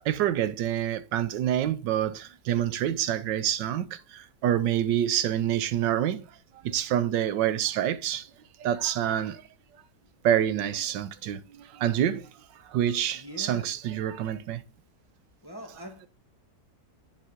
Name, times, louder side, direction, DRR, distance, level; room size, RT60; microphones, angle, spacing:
voice 1, 0.0-6.3 6.6-8.3 8.6-9.4 10.2-12.3 12.6-14.6, right 10 dB, 90° right, 1.4 m, -27 dB
voice 2, 13.1-13.7 15.4-16.1, equal, 15° left, 1.1 m, -42 dB
10.5 x 4.8 x 3.6 m
omnidirectional pair, 1.9 m